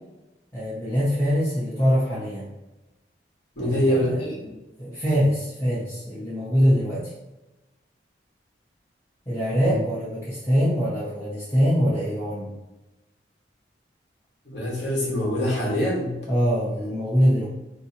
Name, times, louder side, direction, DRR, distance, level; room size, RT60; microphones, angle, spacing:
voice 1, 0.5-2.5 3.6-4.2 4.8-7.1 9.3-12.5 16.3-17.4, equal, 15° left, -9 dB, 0.7 m, -23 dB
voice 2, 3.6-4.4 9.6-9.7 14.4-16.2, equal, 65° left, -4 dB, 1.3 m, -24 dB
4.5 x 3.0 x 2.8 m, 1.1 s
head